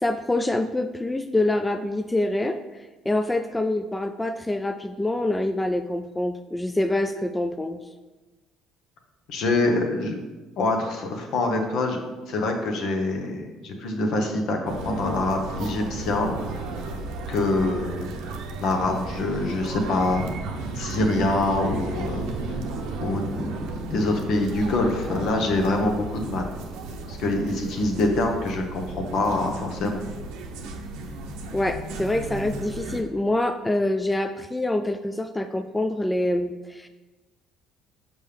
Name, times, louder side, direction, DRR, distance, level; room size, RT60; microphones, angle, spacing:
voice 1, 0.0-2.6 3.1-7.8 31.5-36.9, left 1 dB, 15° left, 8 dB, 0.3 m, -25 dB
voice 2, 9.3-10.2 10.6-16.7 17.3-18.1 18.6-20.3 20.7-22.3 23.0-26.5 27.1-28.8 29.1-30.0, left 2 dB, 65° left, 3 dB, 0.9 m, -25 dB
sound 1, 14.6-33.0, right 2 dB, 75° right, 0.7 m, -34 dB
5.3 x 5.3 x 3.4 m, 1.2 s
hypercardioid pair, 65°, 0 cm